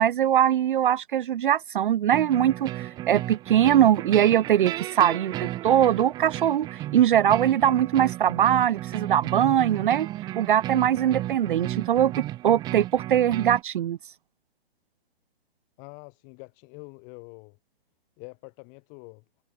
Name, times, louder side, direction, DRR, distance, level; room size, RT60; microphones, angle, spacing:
voice 1, 0.0-10.1 10.4-14.0, right 10 dB, 55° right, 0.6 m, -22 dB
sound 1, 2.1-13.6, right 15 dB, 15° right, 0.7 m, -34 dB
voice 2, 15.8-17.6 18.2-19.2, left 38 dB, 30° left, 7.2 m, -45 dB
hypercardioid pair, 150°, 31 cm